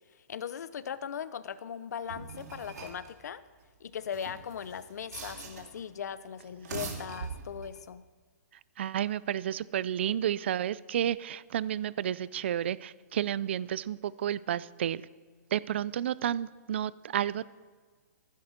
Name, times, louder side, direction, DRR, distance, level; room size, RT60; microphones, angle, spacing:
voice 1, 0.3-3.4 3.8-8.0, left 8 dB, 65° left, 15 dB, 0.7 m, -39 dB
sound 1, 2.1-3.1 4.0-5.8 6.5-7.8, right 4 dB, 65° right, 3.2 m, -42 dB
voice 2, 8.8-15.0 15.5-17.4, right 10 dB, 40° right, 20 dB, 0.3 m, -31 dB
15.0 x 10.5 x 5.1 m, 1.5 s
hypercardioid pair, 175°, 10 cm